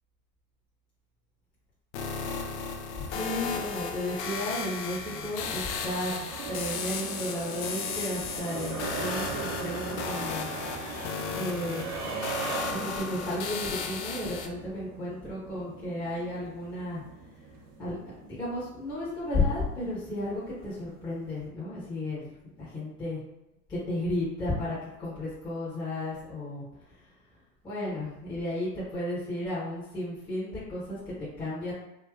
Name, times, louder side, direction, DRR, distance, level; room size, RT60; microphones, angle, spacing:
sound 1, 1.9-14.5, left 5 dB, 45° left, 0.5 m, -35 dB
sound 2, 2.4-21.5, right 4 dB, 65° right, 1.0 m, -40 dB
voice 1, 3.0-6.1 6.5-10.5 11.3-11.9 12.7-17.0 17.8-18.0 18.2-23.2 23.7-26.6 27.6-31.7, left 1 dB, 10° left, -9 dB, 0.9 m, -33 dB
3.2 x 2.7 x 2.3 m, 0.93 s
hypercardioid pair, 125°, 50 cm